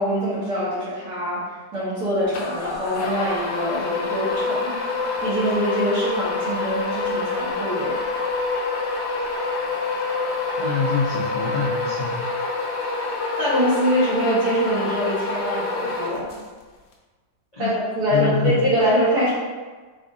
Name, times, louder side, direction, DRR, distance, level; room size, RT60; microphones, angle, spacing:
voice 1, 0.0-4.8 5.2-7.9 13.4-16.3 17.6-19.3, equal, 70° right, -8 dB, 2.1 m, -24 dB
sound 1, 2.3-16.6, left 3 dB, 70° left, 1.2 m, -27 dB
voice 2, 10.6-12.2 17.5-17.8 18.1-18.5, left 5 dB, 50° left, -7 dB, 0.4 m, -25 dB
4.8 x 3.7 x 2.7 m, 1.3 s
omnidirectional pair, 1.8 m